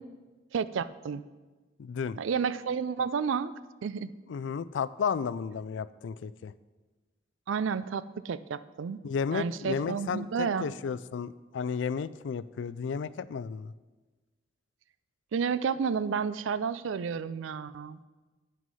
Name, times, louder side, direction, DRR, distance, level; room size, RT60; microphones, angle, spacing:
voice 1, 0.5-1.2 2.2-3.5 3.8-4.1 7.5-9.0 9.3-10.7 15.3-18.1, right 6 dB, 90° right, 15 dB, 0.4 m, -31 dB
voice 2, 1.8-2.2 4.3-6.5 9.0-13.7, left 6 dB, 75° left, 17 dB, 0.3 m, -33 dB
9.2 x 6.1 x 5.5 m, 1.2 s
head